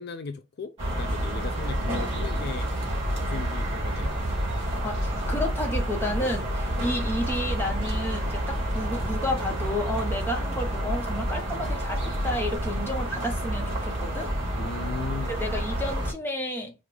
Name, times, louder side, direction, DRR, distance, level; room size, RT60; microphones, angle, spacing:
voice 1, 0.0-2.7 3.2-4.2 14.5-15.3, left 4 dB, 55° left, 0.4 m, -37 dB
sound 1, 0.8-16.1, equal, 30° right, 2.7 m, -29 dB
voice 2, 4.8-14.3 15.3-16.7, left 1 dB, 10° left, 1.1 m, -31 dB
5.0 x 2.5 x 3.3 m
head